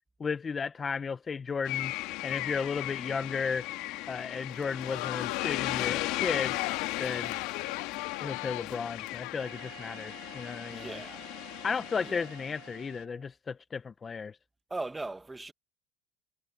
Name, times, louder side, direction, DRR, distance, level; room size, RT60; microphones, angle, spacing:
voice 1, 0.2-1.9 2.2-3.7 4.1-6.6 7.0-7.4 8.2-11.0 11.6-14.4, left 5 dB, 25° left, 0.8 m, -34 dB
sound 1, 1.7-13.0, left 19 dB, 70° left, 2.5 m, -36 dB
Crowd, 4.5-9.4, left 21 dB, 90° left, 0.5 m, -39 dB
Wind instrument woodwind instrument, 9.4-13.3, right 24 dB, 75° right, 3.9 m, -51 dB
voice 2, 10.7-11.2 12.0-12.2 14.7-15.5, right 2 dB, 10° right, 1.7 m, -39 dB
supercardioid pair, 120°, 0 cm